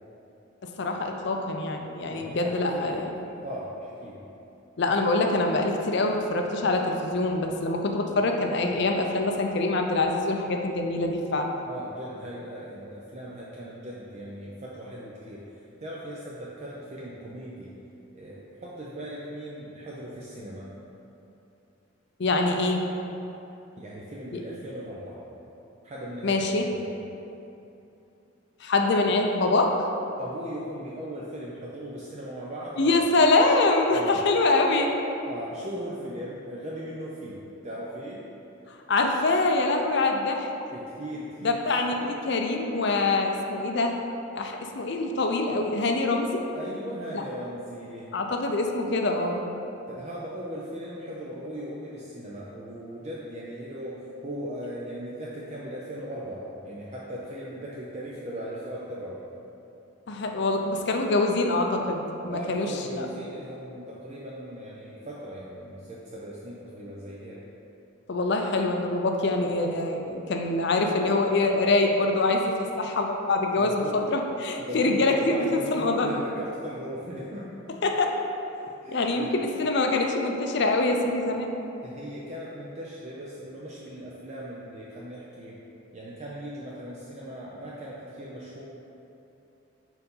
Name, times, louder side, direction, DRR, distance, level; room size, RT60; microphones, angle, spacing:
voice 1, 0.6-3.1 4.8-11.5 22.2-22.8 26.2-26.6 28.6-29.7 32.8-34.9 38.9-40.5 41.4-44.0 44.3-46.4 47.1-47.2 48.1-49.4 60.1-62.7 62.9-63.1 68.1-73.8 74.1-76.1 77.8-78.2 78.9-81.5, left 2 dB, 55° left, 3 dB, 0.5 m, -24 dB
voice 2, 2.1-2.9 3.4-4.2 11.6-17.7 18.1-20.7 23.8-25.2 25.8-26.4 26.8-26.9 30.2-33.0 33.9-34.2 35.3-38.2 40.7-41.6 46.5-48.1 49.9-59.2 62.3-67.4 73.5-74.1 74.6-77.5 78.6-79.3 81.8-85.6 85.9-88.6, equal, 35° right, -6 dB, 0.5 m, -38 dB
4.5 x 3.9 x 5.4 m, 2.9 s
head